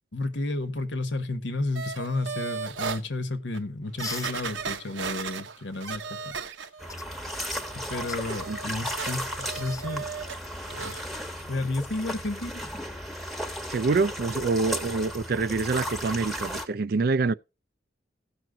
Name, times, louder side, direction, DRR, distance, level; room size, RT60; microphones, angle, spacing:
voice 1, 0.1-6.3 7.7-10.1 10.7-11.1 11.5-12.6, left 2 dB, 75° left, 1.3 m, -32 dB
sound 1, 1.8-3.0 3.5-3.6 4.0-7.0 7.3-10.4 10.7-11.0 11.4-11.5, right 5 dB, 85° right, 1.0 m, -36 dB
sound 2, 4.0-4.4 5.9-6.0 6.9-7.1 7.9-8.2 9.4-9.9 10.9-11.0 13.1-13.3, left 6 dB, 20° left, 0.5 m, -40 dB
sound 3, 6.8-16.7, equal, ahead, 1.0 m, -35 dB
voice 2, 13.7-17.3, right 4 dB, 55° right, 0.4 m, -26 dB
16.0 x 6.1 x 3.9 m
head